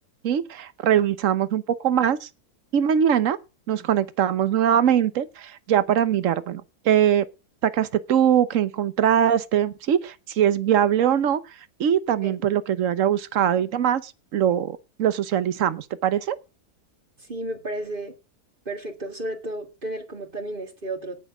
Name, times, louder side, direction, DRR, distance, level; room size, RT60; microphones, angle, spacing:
voice 1, 0.2-2.3 2.7-3.4 3.7-7.3 7.6-11.4 11.8-16.4, right 9 dB, 60° right, 1.2 m, -22 dB
voice 2, 17.2-18.1 18.7-21.2, right 1 dB, 35° right, 2.0 m, -33 dB
18.0 x 6.2 x 4.9 m
omnidirectional pair, 1.7 m